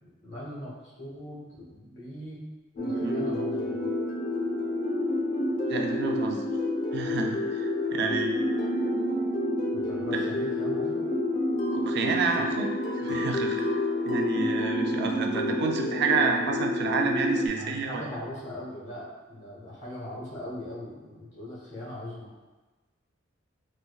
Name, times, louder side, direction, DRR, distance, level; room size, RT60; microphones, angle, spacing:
voice 1, 0.0-2.5 2.7-3.9 9.8-11.1 12.3-12.4 17.5-22.3, left 1 dB, 65° left, -4 dB, 1.1 m, -40 dB
sound 1, 2.8-17.5, left 1 dB, 40° left, 0.5 m, -29 dB
voice 2, 5.7-6.4 6.9-8.3 10.1-10.2 11.7-13.7 14.0-18.0, right 4 dB, 60° right, 3 dB, 0.4 m, -29 dB
4.4 x 2.6 x 2.3 m, 1.2 s
head